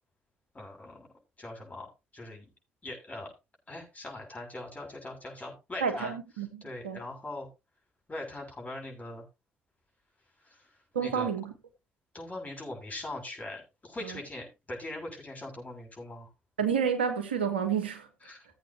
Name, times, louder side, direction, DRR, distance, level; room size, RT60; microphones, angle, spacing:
voice 1, 0.5-1.1 1.4-2.5 2.8-3.3 3.7-6.1 6.6-7.5 8.1-9.3 10.4-10.7 11.0-11.3 12.1-16.3 18.2-18.5, left 2 dB, 25° left, 6.7 m, -41 dB
voice 2, 5.8-7.0 10.9-11.5 14.0-14.2 16.6-18.1, right 7 dB, 90° right, 1.2 m, -30 dB
17.0 x 8.3 x 2.8 m
hypercardioid pair, 50°, 6 cm